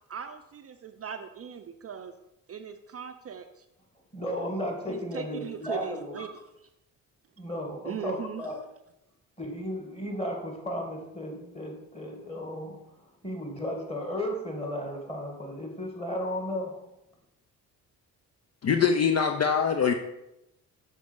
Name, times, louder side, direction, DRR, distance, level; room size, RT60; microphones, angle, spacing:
voice 1, 0.1-2.1 2.5-3.6 4.9-6.3 7.9-8.4, right 7 dB, 40° right, 0.5 m, -39 dB
voice 2, 4.1-6.3 7.4-8.6 9.4-16.8, equal, 15° left, 2.2 m, -34 dB
voice 3, 18.6-19.9, left 6 dB, 45° left, 0.6 m, -23 dB
6.3 x 3.9 x 5.4 m
supercardioid pair, 55°, 37 cm